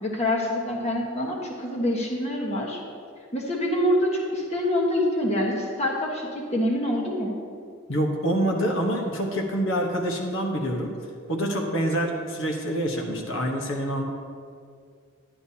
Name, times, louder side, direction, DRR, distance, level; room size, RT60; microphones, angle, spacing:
voice 1, 0.0-2.8 3.3-7.4, left 1 dB, 30° left, -1 dB, 1.3 m, -26 dB
voice 2, 7.9-10.9 11.3-14.0, equal, 60° left, 0 dB, 1.1 m, -26 dB
11.5 x 10.0 x 2.9 m, 2.2 s
head